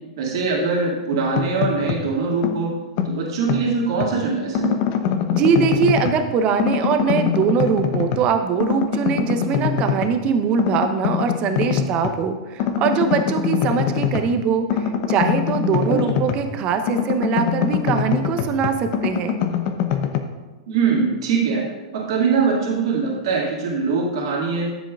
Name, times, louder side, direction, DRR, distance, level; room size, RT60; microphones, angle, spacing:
voice 1, 0.2-2.8 3.0-4.8 15.9-16.1 20.7-24.7, right 5 dB, 65° right, -3 dB, 2.3 m, -22 dB
sound 1, 1.1-2.1 2.4-4.2 4.5-6.3 6.6-8.3 8.6-10.2 10.6-12.2 12.6-16.6 16.9-20.2, left 8 dB, 50° left, 0.8 m, -24 dB
voice 2, 5.3-19.4, right 6 dB, 40° right, 7 dB, 0.8 m, -22 dB
12.5 x 7.4 x 2.5 m, 1.2 s
hypercardioid pair, 105°, 3 cm